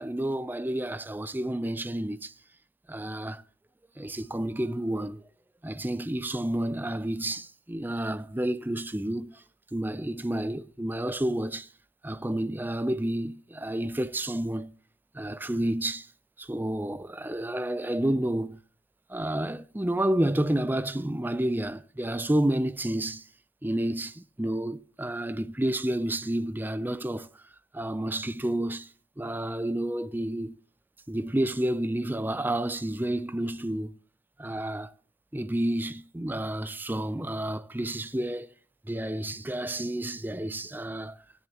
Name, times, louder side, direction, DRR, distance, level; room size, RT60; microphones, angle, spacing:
voice 1, 0.0-2.3 2.9-3.4 4.0-5.2 5.6-9.4 9.7-11.7 12.0-14.8 15.1-16.1 16.4-18.6 19.1-23.3 23.6-27.3 27.7-28.9 29.2-30.6 31.1-34.0 34.4-34.9 35.3-38.5 38.9-41.2, right 1 dB, 10° right, 0.5 m, -30 dB
16.0 x 10.0 x 2.9 m
head